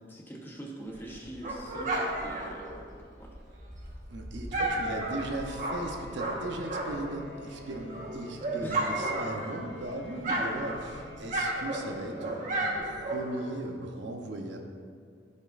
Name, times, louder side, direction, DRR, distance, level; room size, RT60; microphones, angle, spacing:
voice 1, 0.1-2.8 3.2-3.3 8.6-8.8, right 1 dB, 10° left, -2 dB, 1.0 m, -42 dB
Dog, 0.9-7.2 7.5-9.8 10.1-13.5, right 2 dB, 40° right, 1.3 m, -33 dB
voice 2, 4.1-14.6, right 1 dB, 65° right, 2 dB, 0.8 m, -37 dB
sound 1, 5.4-13.0, left 2 dB, 35° left, 1.6 m, -49 dB
14.5 x 5.3 x 2.5 m, 2.1 s
head